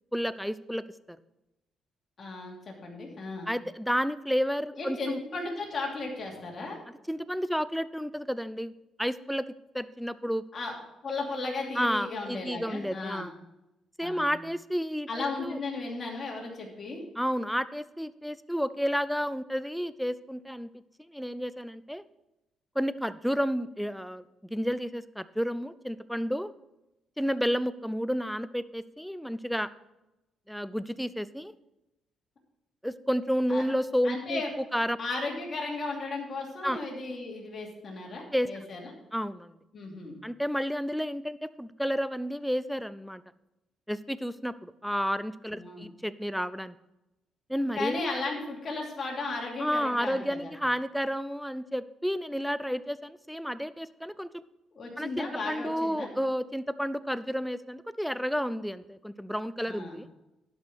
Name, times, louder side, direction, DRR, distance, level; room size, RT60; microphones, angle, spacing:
voice 1, 0.1-1.2 3.5-5.2 7.1-8.7 9.0-9.5 9.7-10.4 11.8-13.3 14.0-15.6 17.2-20.7 21.1-22.0 22.8-26.5 27.2-29.7 30.5-31.5 32.8-35.0 36.6-36.8 38.3-38.5 39.1-39.6 40.2-43.2 43.9-46.8 47.5-48.0 49.6-54.3 55.0-60.1, equal, ahead, 15 dB, 0.5 m, -31 dB
voice 2, 2.2-3.5 4.8-6.8 10.5-10.7 11.0-13.3 14.0-14.4 15.1-17.0 33.5-33.6 34.0-34.5 35.0-38.9 39.7-40.1 45.6-45.8 47.7-50.5 54.7-56.1 59.7-60.0, left 3 dB, 40° left, -1 dB, 2.9 m, -35 dB
11.5 x 5.5 x 6.2 m, 0.95 s
cardioid pair, 90°, 0 cm